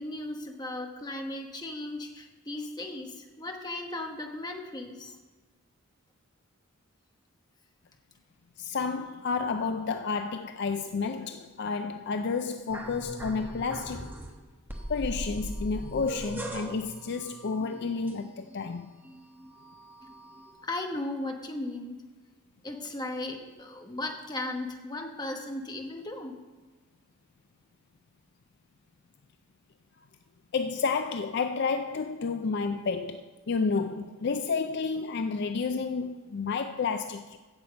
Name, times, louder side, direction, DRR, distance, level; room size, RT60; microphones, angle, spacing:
voice 1, 0.0-5.2 20.6-22.0 22.6-26.4, left 2 dB, 20° left, 1.0 m, -36 dB
voice 2, 8.6-14.1 14.9-18.9 30.5-37.4, left 4 dB, 50° left, 0.4 m, -31 dB
sound 1, 12.7-14.3 14.7-18.7 19.0-20.5, right 1 dB, 10° right, 1.0 m, -40 dB
8.8 x 6.9 x 7.9 m
head